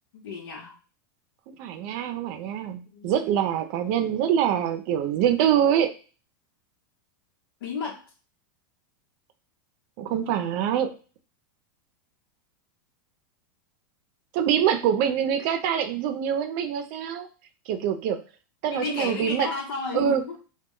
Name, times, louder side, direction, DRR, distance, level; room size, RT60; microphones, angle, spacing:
voice 1, 0.1-0.8 2.9-3.1 7.6-8.1 18.7-20.4, left 4 dB, 90° left, -1 dB, 0.9 m, -33 dB
voice 2, 1.5-5.9 10.0-10.9 14.3-17.3 17.7-18.2 18.6-19.5 19.9-20.2, right 9 dB, 50° right, 7 dB, 0.5 m, -24 dB
2.3 x 2.1 x 3.7 m, 0.35 s
supercardioid pair, 145°, 12 cm